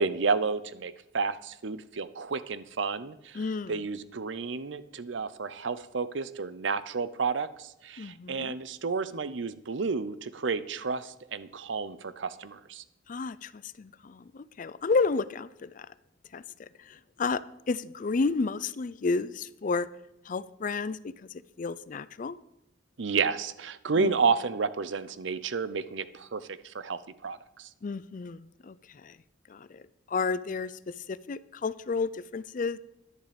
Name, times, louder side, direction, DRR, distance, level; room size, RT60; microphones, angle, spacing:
voice 1, 0.0-3.4 3.7-12.8 23.0-27.7, right 4 dB, 70° right, 15 dB, 0.7 m, -31 dB
voice 2, 3.3-3.8 8.0-8.6 13.1-15.9 16.3-19.9 20.3-22.4 23.9-24.1 27.8-29.2 29.5-29.8 30.1-32.8, left 4 dB, 45° left, 17 dB, 0.4 m, -32 dB
11.0 x 10.5 x 5.1 m, 0.87 s
head